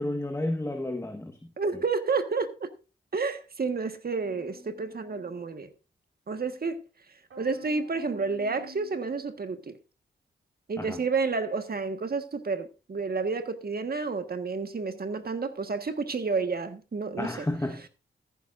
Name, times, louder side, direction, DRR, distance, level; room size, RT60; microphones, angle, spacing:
voice 1, 0.0-1.4 10.8-11.0 17.2-17.8, left 1 dB, 15° left, 1.3 m, -31 dB
voice 2, 1.6-2.7 3.1-5.7 6.3-6.8 7.4-9.7 10.7-17.5, right 4 dB, 50° right, 1.5 m, -30 dB
sound 1, 4.1-5.6 7.3-9.2, right 1 dB, 85° right, 4.9 m, -50 dB
14.5 x 11.0 x 2.6 m
cardioid pair, 75°, 20 cm